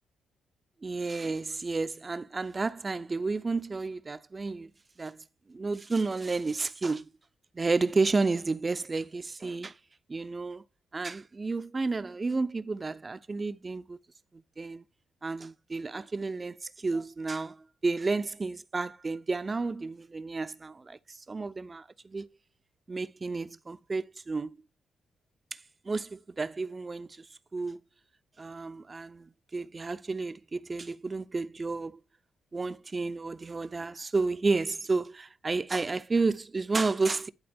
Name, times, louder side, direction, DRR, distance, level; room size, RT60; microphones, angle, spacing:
voice 1, 0.8-4.7 5.0-5.2 5.5-7.1 7.5-9.7 10.1-10.6 10.9-14.0 14.6-14.8 15.2-21.0 21.3-22.3 22.9-24.5 25.8-27.3 27.5-27.8 28.4-32.0 32.5-37.3, right 3 dB, 30° right, 0.7 m, -31 dB
11.5 x 3.9 x 5.3 m
cardioid pair, 80°, 0 cm